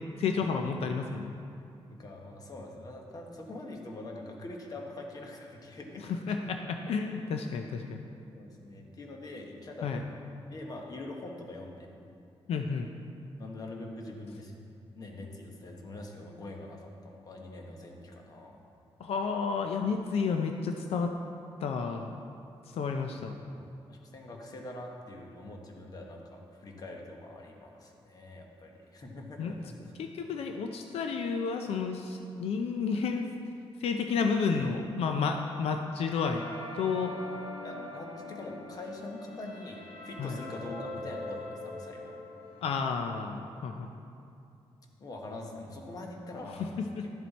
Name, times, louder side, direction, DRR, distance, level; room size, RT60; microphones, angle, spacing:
voice 1, 0.2-1.3 6.1-8.1 9.8-10.0 12.5-12.9 19.0-21.1 21.6-22.1 22.7-23.4 29.4-29.5 30.0-33.3 33.8-36.4 36.7-37.1 40.2-40.4 42.6-43.9 46.8-47.1, left 5 dB, 85° left, 4 dB, 0.5 m, -31 dB
voice 2, 1.9-6.1 8.3-10.1 10.5-11.9 13.4-14.6 14.9-18.6 23.0-29.9 34.5-34.7 37.6-42.2 45.0-46.7 47.0-47.1, left 2 dB, 40° left, 1 dB, 1.2 m, -44 dB
sound 1, 36.0-42.8, left 2 dB, 70° left, 1.9 m, -43 dB
12.0 x 7.5 x 4.1 m, 2.6 s
wide cardioid pair, 155°, 10 cm